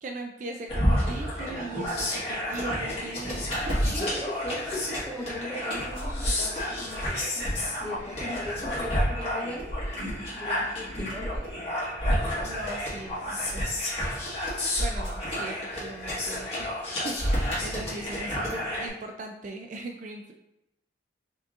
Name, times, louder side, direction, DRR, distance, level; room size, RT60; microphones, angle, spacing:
voice 1, 0.0-4.1 12.4-13.8 14.5-16.7 17.0-20.3, right 2 dB, 40° right, 3 dB, 0.3 m, -39 dB
sound 1, 0.7-18.9, equal, 35° left, 1.6 m, -30 dB
voice 2, 3.8-9.6 10.3-11.5, left 1 dB, 10° left, -4 dB, 1.0 m, -38 dB
5.2 x 3.8 x 2.5 m, 0.89 s
head